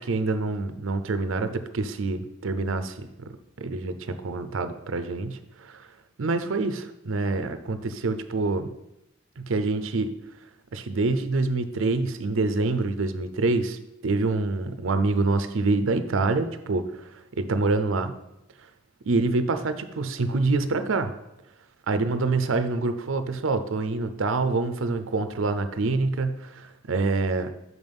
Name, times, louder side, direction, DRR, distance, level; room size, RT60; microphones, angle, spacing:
voice 1, 0.0-3.1 3.6-5.9 6.2-8.7 9.4-10.1 10.7-17.0 17.4-18.1 19.1-21.1 21.9-27.5, right 3 dB, 75° right, 10 dB, 0.6 m, -26 dB
6.2 x 5.4 x 5.3 m, 0.87 s
head